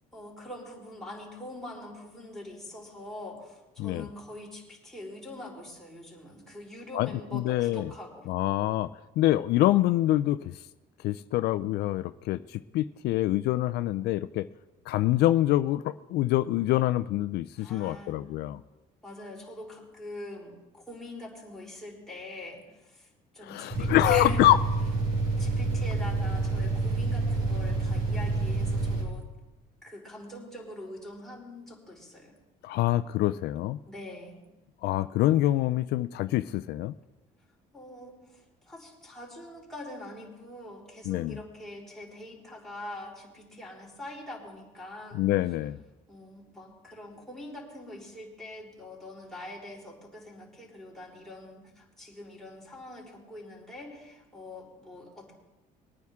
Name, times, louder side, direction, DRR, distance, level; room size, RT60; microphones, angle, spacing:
voice 1, 0.1-8.3 17.6-18.2 19.0-23.1 23.3-24.4 25.4-29.2 29.8-32.4 33.9-34.5 37.7-38.4 38.7-45.2 46.1-55.3, left 1 dB, ahead, -5 dB, 4.2 m, -44 dB
voice 2, 6.9-7.9 8.3-10.6 11.0-14.5 14.9-18.6 23.4-24.6 32.6-33.8 34.8-36.9 41.1-41.4 45.1-45.8, left 15 dB, 75° left, 13 dB, 0.4 m, -26 dB
sound 1, 23.7-29.0, right 3 dB, 55° right, 4.8 m, -28 dB
21.5 x 9.4 x 3.6 m, 1.0 s
cardioid pair, 110°, 17 cm